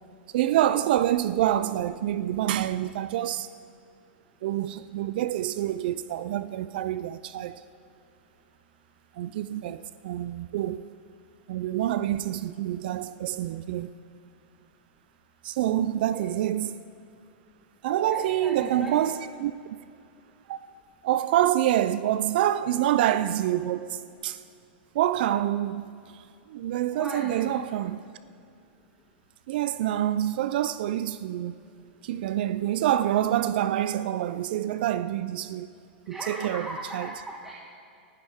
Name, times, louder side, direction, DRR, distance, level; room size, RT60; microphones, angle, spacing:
voice 1, 0.3-3.5 4.4-7.6 9.2-10.9 11.5-13.9 15.4-16.8 17.8-19.5 20.5-20.6 21.0-24.4 24.9-25.9 26.5-28.0 29.5-31.6 32.0-35.7 36.1-37.1, right 12 dB, 60° right, 0.4 m, -27 dB
voice 2, 15.8-16.3 17.8-18.9 26.9-27.5 36.1-37.5, right 1 dB, 5° right, 1.2 m, -38 dB
19.0 x 11.5 x 3.5 m
hypercardioid pair, 145°, 6 cm